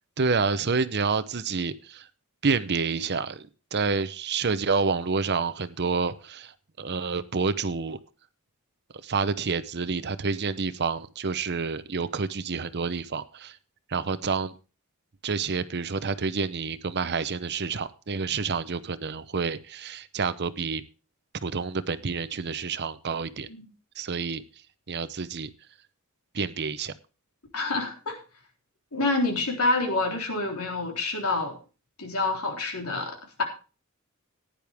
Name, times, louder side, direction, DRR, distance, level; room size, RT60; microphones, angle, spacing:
voice 1, 0.2-2.1 2.4-8.0 9.0-13.6 13.9-14.5 15.2-20.8 21.4-23.5 24.0-24.4 24.9-25.5 26.3-26.9, right 4 dB, 50° right, 14 dB, 0.8 m, -28 dB
voice 2, 27.5-28.2 28.9-31.6 32.0-33.4, left 2 dB, 80° left, 2 dB, 3.7 m, -27 dB
15.5 x 10.0 x 3.5 m, 0.34 s
head